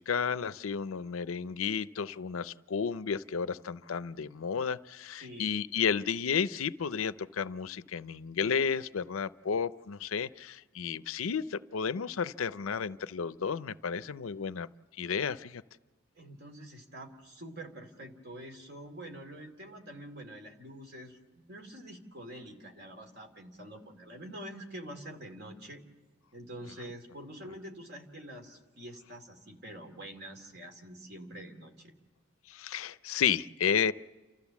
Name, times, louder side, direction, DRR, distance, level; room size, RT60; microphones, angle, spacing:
voice 1, 0.0-14.7 15.0-15.6 32.5-33.9, left 6 dB, 85° left, 16 dB, 0.5 m, -32 dB
voice 2, 5.2-5.7 16.2-25.8 26.3-31.9, right 1 dB, 55° right, 4 dB, 2.6 m, -46 dB
29.0 x 13.5 x 7.1 m, 1.3 s
head